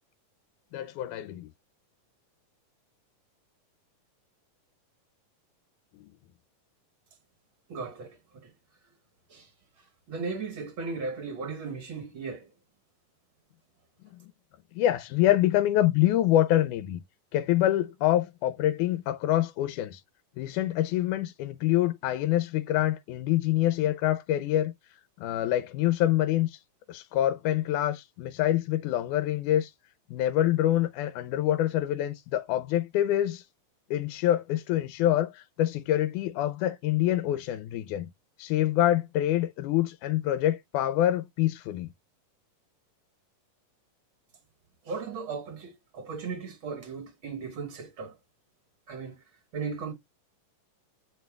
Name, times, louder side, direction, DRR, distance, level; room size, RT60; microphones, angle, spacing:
voice 1, 0.7-1.5 6.0-6.1 14.8-17.0 17.3-20.0 20.4-24.7 25.2-26.6 26.9-29.7 30.1-33.4 33.9-38.1 38.4-41.9, left 13 dB, 80° left, 1.9 m, -26 dB
voice 2, 7.7-8.5 9.3-9.5 9.8-12.5 44.8-48.2 48.9-49.2 49.5-49.9, right 4 dB, 60° right, 1.3 m, -37 dB
9.6 x 4.4 x 2.3 m
omnidirectional pair, 3.9 m